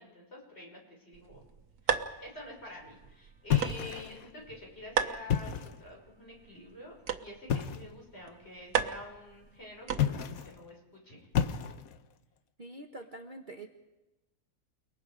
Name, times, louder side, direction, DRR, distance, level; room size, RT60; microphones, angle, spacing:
voice 1, 0.0-1.4 1.8-11.3, left 1 dB, 40° left, -2 dB, 6.6 m, -48 dB
sound 1, 1.1-10.4, right 7 dB, 75° right, 1.6 m, -37 dB
sound 2, 3.5-4.3 5.2-5.9 7.5-7.9 9.9-10.6 11.3-12.1, left 9 dB, 70° left, 1.3 m, -31 dB
voice 2, 12.6-13.7, right 2 dB, 35° right, 3 dB, 1.2 m, -45 dB
29.5 x 19.5 x 5.1 m, 1.1 s
omnidirectional pair, 1.6 m